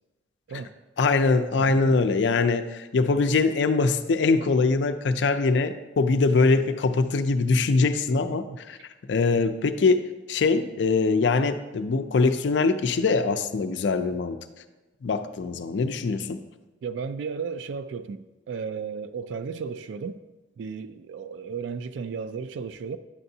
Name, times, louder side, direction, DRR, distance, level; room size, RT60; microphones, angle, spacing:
voice 1, 1.0-8.8 9.1-14.4 15.0-16.4, left 4 dB, 70° left, 0.4 m, -23 dB
voice 2, 1.6-2.0 8.3-8.6 16.8-20.2 20.6-23.0, right 5 dB, 85° right, 0.3 m, -34 dB
9.9 x 6.7 x 2.7 m
head